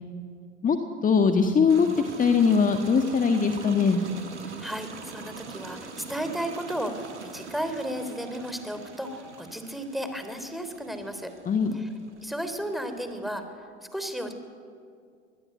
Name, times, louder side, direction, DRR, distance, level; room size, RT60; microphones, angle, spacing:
voice 1, 1.0-1.9 2.2-4.0 11.4-11.8, left 5 dB, 25° left, 5 dB, 1.7 m, -21 dB
sound 1, 1.7-13.4, right 4 dB, 90° right, 2.6 m, -43 dB
voice 2, 4.4-11.3 11.7-11.9 12.2-14.3, equal, ahead, 7 dB, 3.5 m, -34 dB
25.0 x 20.5 x 9.4 m, 2.2 s
hypercardioid pair, 85°, 34 cm